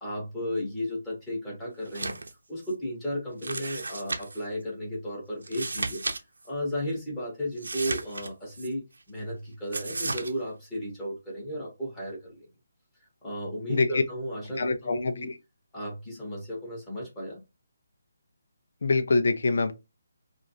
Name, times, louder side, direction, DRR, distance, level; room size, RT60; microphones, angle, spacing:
voice 1, 0.0-2.2 2.5-6.0 6.4-12.5 13.2-15.3 15.7-17.4, equal, 10° left, 2.2 m, -34 dB
sound 1, 1.8-2.3 2.6-2.7 3.4-4.4 5.4-6.2 6.4-6.5 7.6-8.7 9.7-10.3, right 3 dB, 70° right, 0.7 m, -34 dB
voice 2, 13.7-14.0 14.6-15.3 18.8-19.7, left 3 dB, 60° left, 0.7 m, -25 dB
4.8 x 2.5 x 2.8 m
figure-of-eight pair, 145°, 0 cm